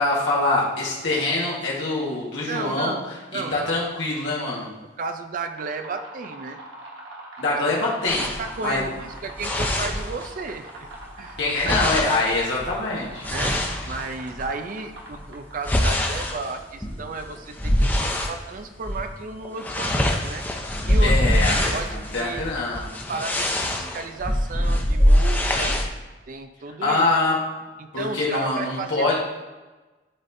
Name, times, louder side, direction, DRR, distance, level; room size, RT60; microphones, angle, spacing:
voice 1, 0.0-3.0 3.3-4.7 7.4-8.3 8.6-8.8 11.4-13.2 21.0-22.8 26.8-27.4 27.9-29.2, left 2 dB, 80° left, -6 dB, 1.5 m, -24 dB
voice 2, 2.5-3.1 3.3-3.7 5.0-6.6 8.2-10.9 11.2-11.4 13.3-21.3 21.7-22.5 23.1-25.8 26.3-27.1 27.8-29.2, right 3 dB, 45° right, 7 dB, 0.4 m, -33 dB
sound 1, 5.5-15.7, right 2 dB, 85° right, 1.3 m, -43 dB
sound 2, 8.1-10.6 10.9-14.5 15.0-18.4 18.8-19.1 19.3-25.9, left 1 dB, 10° left, 0.6 m, -24 dB
11.0 x 4.1 x 2.6 m, 1.2 s
head